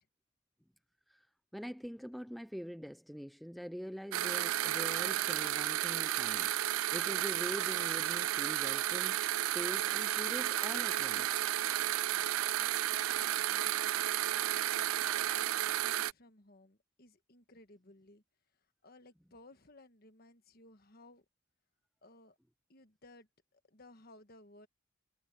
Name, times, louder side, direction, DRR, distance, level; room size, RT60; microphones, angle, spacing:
voice 1, 1.5-11.4, equal, ahead, 0.3 m, -44 dB
sound 1, 4.1-16.1, right 13 dB, 80° right, 0.4 m, -32 dB
voice 2, 12.0-18.2 18.5-21.2 22.0-22.4 22.7-24.7, left 2 dB, 45° left, 1.5 m, -60 dB
head